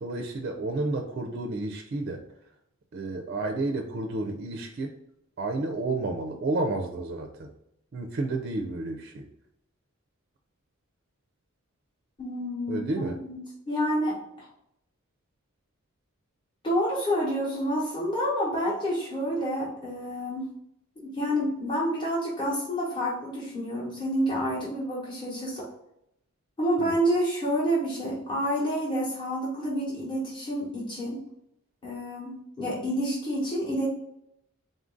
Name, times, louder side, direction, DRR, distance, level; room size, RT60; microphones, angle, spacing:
voice 1, 0.0-2.2 2.9-4.9 5.4-7.5 7.9-9.2 12.7-13.2, right 2 dB, 45° right, 4 dB, 0.4 m, -31 dB
voice 2, 12.2-14.5 16.6-20.5 21.0-25.7 26.6-31.2 31.8-33.9, equal, 20° left, -6 dB, 0.9 m, -29 dB
3.8 x 2.5 x 3.7 m, 0.79 s
head